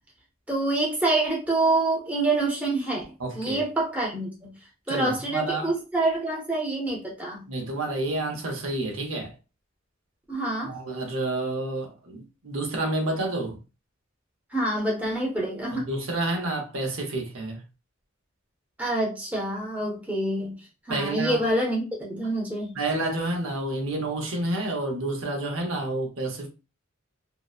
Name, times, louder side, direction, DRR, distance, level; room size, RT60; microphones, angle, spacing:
voice 1, 0.5-3.0 3.3-4.5 4.9-7.4 10.3-10.7 14.5-15.9 18.8-20.6 20.9-22.8, right 2 dB, 5° right, 0.6 m, -26 dB
voice 2, 3.2-3.6 4.9-5.7 7.5-9.3 10.6-13.6 15.7-17.6 20.9-21.4 22.8-26.5, right 2 dB, 70° right, 0.7 m, -29 dB
2.7 x 2.0 x 2.3 m
head